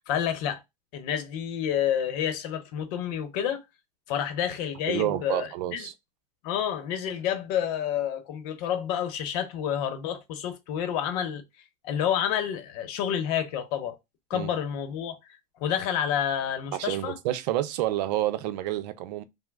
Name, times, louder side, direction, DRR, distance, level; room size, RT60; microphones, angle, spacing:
voice 1, 0.1-0.6 0.9-3.6 4.1-5.9 6.4-11.4 11.8-14.0 14.3-15.2 15.6-17.2, left 9 dB, 75° left, 0.8 m, -29 dB
voice 2, 4.9-5.9 14.3-14.5 16.7-19.2, right 14 dB, 80° right, 0.5 m, -29 dB
3.0 x 2.0 x 3.4 m
supercardioid pair, 130°, 21 cm